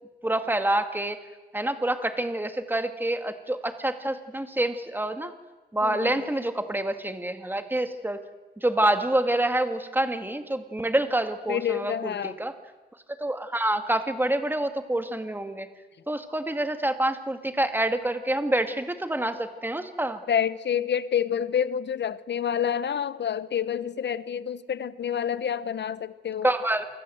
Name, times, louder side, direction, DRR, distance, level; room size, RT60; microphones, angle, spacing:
voice 1, 0.2-1.2 1.5-5.3 5.7-8.2 8.6-12.5 13.2-15.7 16.1-20.2 26.4-26.9, right 1 dB, 10° right, 8 dB, 2.0 m, -27 dB
voice 2, 5.8-6.3 11.5-12.4 20.3-26.5, left 8 dB, 85° left, 15 dB, 1.0 m, -28 dB
28.5 x 24.5 x 7.9 m, 1.2 s
wide cardioid pair, 125°, 18 cm